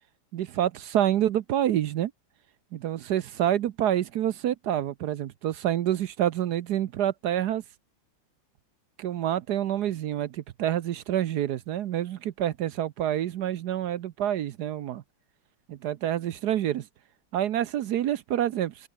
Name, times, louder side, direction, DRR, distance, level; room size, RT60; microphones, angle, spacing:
voice 1, 0.3-2.1 2.7-7.6 9.0-15.0 15.7-16.8 17.3-18.9, right 11 dB, 65° right, 1.1 m, -27 dB
omnidirectional pair, 2.2 m